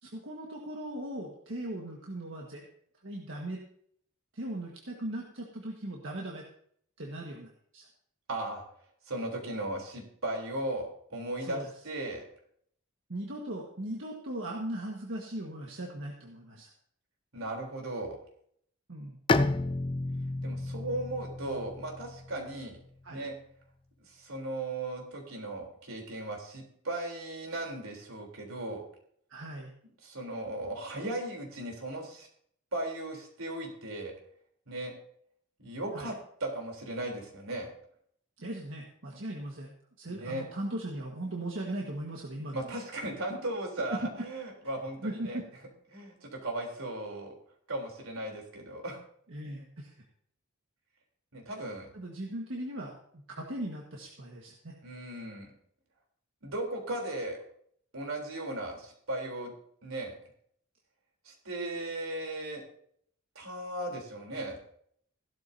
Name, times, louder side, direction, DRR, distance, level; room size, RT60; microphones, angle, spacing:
voice 1, 0.0-2.6 3.0-3.6 4.3-6.4 7.0-7.9 11.4-11.7 13.1-16.7 18.9-19.2 23.0-23.3 29.3-29.7 35.9-36.1 38.4-39.7 40.0-42.7 43.9-44.0 45.0-45.5 49.3-50.0 51.5-51.6 51.9-54.8, right 1 dB, 65° right, -1 dB, 1.6 m, -38 dB
voice 2, 8.3-8.6 9.1-12.2 17.3-18.2 20.4-22.8 23.1-23.3 24.1-28.8 30.0-32.3 32.7-34.1 34.7-34.9 35.6-36.1 36.4-37.7 40.1-40.4 42.5-45.4 45.9-47.4 47.7-49.0 51.3-51.9 54.8-55.5 56.4-57.4 57.9-59.5 59.8-60.1 61.2-62.6 63.4-64.6, right 1 dB, 85° right, 1 dB, 3.6 m, -37 dB
Bowed string instrument, 19.3-22.9, left 2 dB, 25° left, 0.4 m, -31 dB
16.0 x 12.0 x 2.8 m, 0.64 s
head